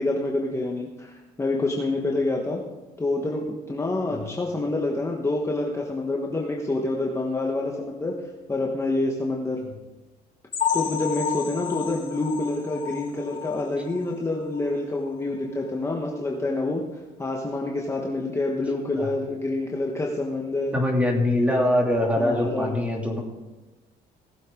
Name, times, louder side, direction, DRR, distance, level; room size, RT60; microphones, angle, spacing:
voice 1, 0.0-2.6 3.0-9.6 10.7-16.8 17.2-20.7 22.2-22.7, left 2 dB, 15° left, -1 dB, 1.3 m, -27 dB
sound 1, 10.5-14.1 14.5-14.7 15.1-15.2 15.6-15.7, left 9 dB, 50° left, 4.9 m, -31 dB
voice 2, 20.7-23.2, left 1 dB, 10° right, 0 dB, 2.7 m, -23 dB
19.0 x 7.7 x 3.8 m, 1.1 s
cardioid pair, 110°, 17 cm